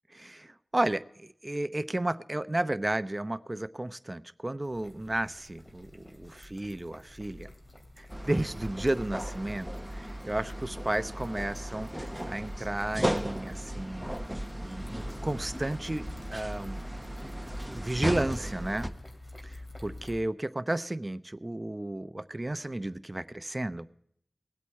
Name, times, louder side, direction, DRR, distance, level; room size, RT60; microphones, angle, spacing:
voice 1, 0.1-7.5 8.0-9.7 10.0-14.1 14.6-16.0 16.3-16.8 17.2-18.9 19.4-23.9, right 1 dB, 30° right, 13 dB, 0.7 m, -33 dB
sound 1, 4.6-20.2, left 1 dB, 40° left, 2.9 m, -49 dB
sound 2, 8.1-18.9, equal, 5° right, 1.0 m, -36 dB
19.5 x 8.3 x 4.4 m, 0.69 s
cardioid pair, 40°, 0 cm